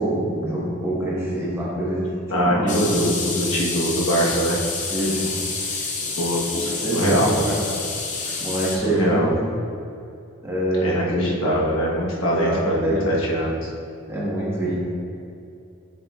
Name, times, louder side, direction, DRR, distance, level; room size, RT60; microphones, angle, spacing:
voice 1, 0.0-3.2 4.9-5.3 6.5-7.6 8.4-9.4 10.4-10.9 12.3-13.1 14.1-14.7, right 1 dB, 10° right, -7 dB, 1.3 m, -25 dB
voice 2, 2.3-4.6 6.2-7.5 8.7-9.3 10.8-13.7, equal, 70° left, -5 dB, 1.2 m, -23 dB
sound 1, 2.7-8.8, left 4 dB, 35° left, 0.8 m, -28 dB
7.2 x 6.1 x 2.4 m, 2.6 s
head